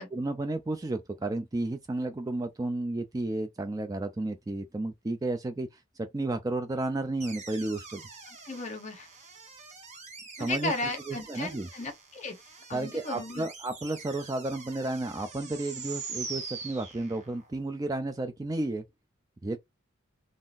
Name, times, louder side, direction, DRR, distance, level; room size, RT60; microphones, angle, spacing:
voice 1, 0.1-5.7 6.0-8.0 10.4-10.7 11.1-11.7 12.7-18.8 19.4-19.6, right 2 dB, 15° right, 0.3 m, -32 dB
sound 1, 7.2-17.5, right 4 dB, 35° right, 1.0 m, -44 dB
voice 2, 8.4-9.1 10.4-12.4 12.7-13.5, left 2 dB, 35° left, 1.0 m, -35 dB
3.6 x 2.5 x 2.5 m
head